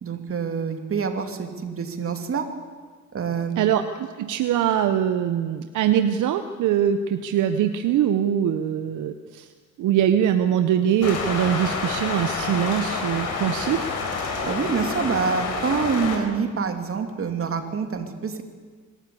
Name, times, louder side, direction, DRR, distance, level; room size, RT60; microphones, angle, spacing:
voice 1, 0.0-2.4 3.1-3.6 14.4-18.4, right 5 dB, 45° right, 5 dB, 2.8 m, -26 dB
voice 2, 3.6-9.5 9.8-13.9, right 9 dB, 80° right, 8 dB, 0.9 m, -23 dB
sound 1, 11.0-16.2, left 4 dB, 80° left, 4.2 m, -28 dB
24.5 x 13.0 x 8.5 m, 1.5 s
cardioid pair, 90°, 30 cm